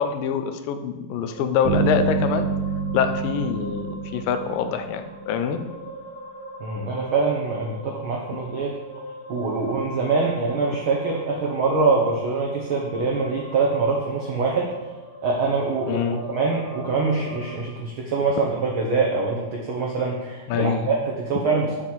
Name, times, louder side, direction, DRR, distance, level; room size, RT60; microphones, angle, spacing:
voice 1, 0.0-2.5 2.9-5.6 15.9-16.2 20.5-20.9, left 7 dB, 85° left, 8 dB, 2.5 m, -25 dB
sound 1, 1.3-17.6, equal, 50° left, 2.1 m, -40 dB
sound 2, 1.6-5.4, right 5 dB, 50° right, 2.3 m, -27 dB
voice 2, 6.6-8.8 9.3-14.7 15.2-21.8, right 4 dB, 75° right, -1 dB, 1.2 m, -24 dB
6.9 x 6.1 x 7.3 m, 1.1 s
omnidirectional pair, 3.9 m